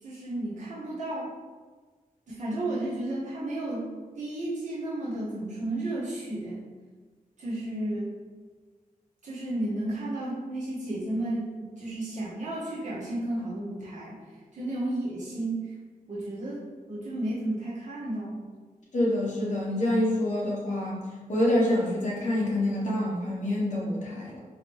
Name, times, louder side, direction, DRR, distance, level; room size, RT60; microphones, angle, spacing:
voice 1, 0.0-1.3 2.3-3.8 4.1-6.6 7.4-8.1 9.2-14.2 14.5-15.7 16.1-18.5, right 1 dB, 55° right, -8 dB, 1.1 m, -33 dB
voice 2, 18.9-21.0 21.3-24.4, left 1 dB, 55° left, -4 dB, 1.1 m, -26 dB
4.0 x 3.0 x 3.1 m, 1.4 s
wide cardioid pair, 155°, 15 cm